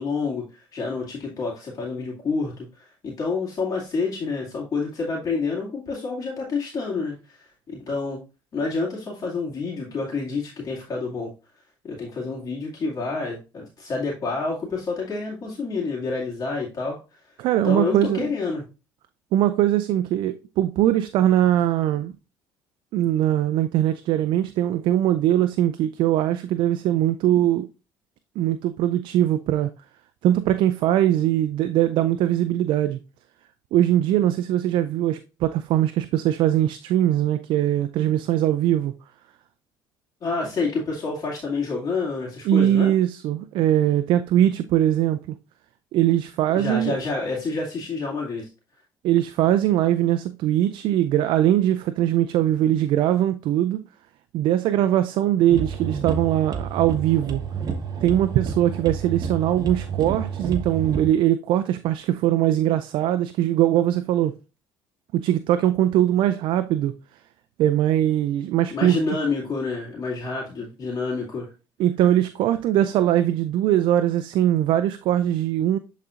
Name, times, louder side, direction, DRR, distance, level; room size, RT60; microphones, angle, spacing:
voice 1, 0.0-8.2 8.5-11.3 11.8-17.0 17.6-18.6 40.2-42.9 46.5-48.5 68.7-71.5, left 4 dB, 40° left, 2.4 m, -28 dB
voice 2, 17.4-18.3 19.3-22.1 22.9-27.7 28.4-29.7 30.2-33.0 33.7-39.0 42.4-45.4 45.9-46.9 49.0-53.8 54.3-57.4 58.0-64.3 65.1-67.0 67.6-69.0 71.8-75.8, right 12 dB, 70° right, 0.4 m, -21 dB
sound 1, 55.5-61.1, right 6 dB, 45° right, 1.2 m, -30 dB
11.0 x 4.1 x 2.5 m
supercardioid pair, 85°, 9 cm